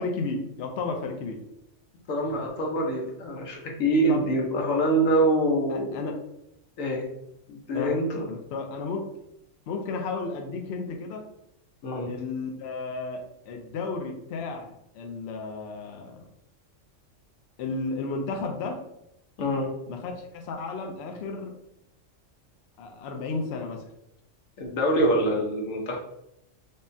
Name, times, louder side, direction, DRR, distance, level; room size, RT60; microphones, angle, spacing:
voice 1, 0.0-1.4 4.1-4.2 5.7-6.2 7.7-8.0 8.3-9.1 9.7-11.2 12.1-16.3 17.6-18.8 19.9-21.5 22.8-23.8, left 3 dB, 65° left, 3 dB, 0.8 m, -33 dB
voice 2, 2.1-6.0 6.8-7.1 7.5-8.2 11.8-12.1 19.4-19.7 24.6-26.0, right 1 dB, 90° left, 0 dB, 1.2 m, -25 dB
5.3 x 2.1 x 2.6 m, 0.82 s
omnidirectional pair, 1.3 m